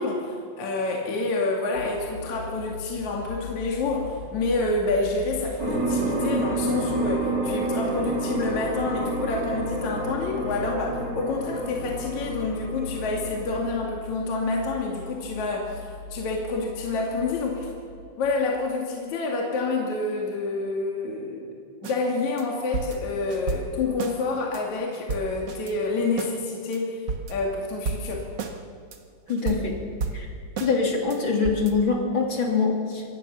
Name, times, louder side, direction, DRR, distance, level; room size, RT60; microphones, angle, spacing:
voice 1, 0.0-17.7 18.2-21.5 21.8-27.0 27.3-28.2, left 3 dB, 55° left, -1 dB, 3.5 m, -28 dB
sound 1, 1.8-18.5, left 3 dB, 75° left, 4.2 m, -40 dB
sound 2, 5.6-13.6, right 2 dB, 25° right, 4.0 m, -29 dB
sound 3, 21.8-22.0 22.4-22.5 22.7-24.2 24.5-24.6 24.9-25.7 26.2-26.3 26.7-26.8 27.1-27.6 27.8-28.5 28.9-29.0 29.3-30.7 31.1-31.2 31.4-31.7, right 4 dB, 50° right, 1.3 m, -32 dB
voice 2, 29.3-29.7 30.1-30.3 30.6-33.0, left 4 dB, 35° left, 1 dB, 3.2 m, -24 dB
25.5 x 18.5 x 7.0 m, 2.4 s
omnidirectional pair, 4.3 m